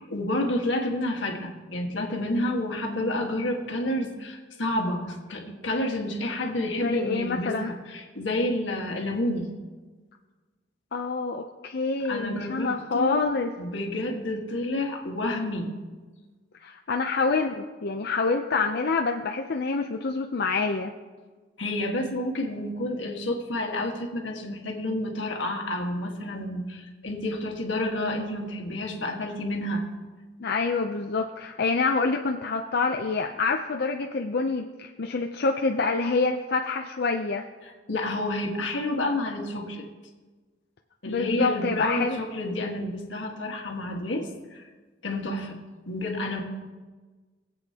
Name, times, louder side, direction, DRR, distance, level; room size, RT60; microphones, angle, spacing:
voice 1, 0.0-9.5 12.0-13.2 13.6-15.7 21.6-29.9 37.9-39.8 41.0-44.7 45.0-45.6 45.9-46.4, left 1 dB, 80° left, 2 dB, 1.6 m, -29 dB
voice 2, 6.8-7.7 10.9-13.5 16.6-20.9 30.4-37.5 41.1-42.2 42.5-42.6, left 4 dB, 60° left, 3 dB, 0.5 m, -27 dB
21.0 x 8.0 x 2.8 m, 1.3 s
head